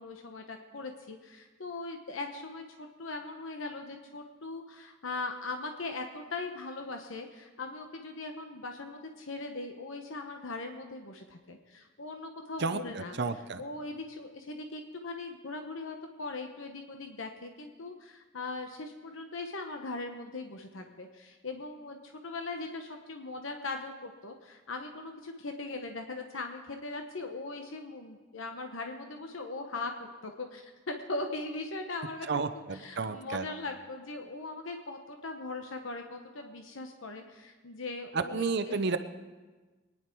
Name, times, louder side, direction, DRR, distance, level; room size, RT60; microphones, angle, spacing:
voice 1, 0.0-13.2 13.6-32.3 32.5-38.8, left 3 dB, 75° left, 4 dB, 1.0 m, -40 dB
voice 2, 12.6-13.6 32.3-33.5 38.1-39.0, right 4 dB, 55° right, 9 dB, 0.6 m, -31 dB
23.0 x 10.0 x 4.6 m, 1.3 s
head